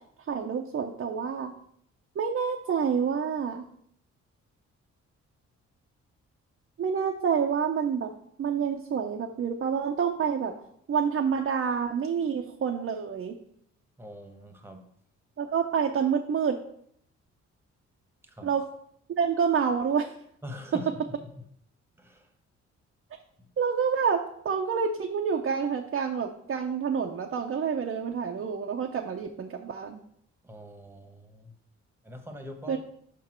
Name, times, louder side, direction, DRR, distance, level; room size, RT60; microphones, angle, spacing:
voice 1, 0.3-1.5 2.2-3.6 6.8-8.1 8.4-10.5 10.9-13.4 15.4-16.6 18.4-18.6 19.2-20.1 23.6-30.0 32.7-32.8, right 6 dB, 45° right, 2 dB, 0.6 m, -28 dB
voice 2, 14.0-14.9 18.2-18.5 20.4-21.4 22.0-22.3 23.4-23.5 30.4-31.6 32.0-32.8, equal, 10° right, 4 dB, 1.2 m, -43 dB
5.9 x 5.4 x 4.4 m, 0.68 s
cardioid pair, 80°, 29 cm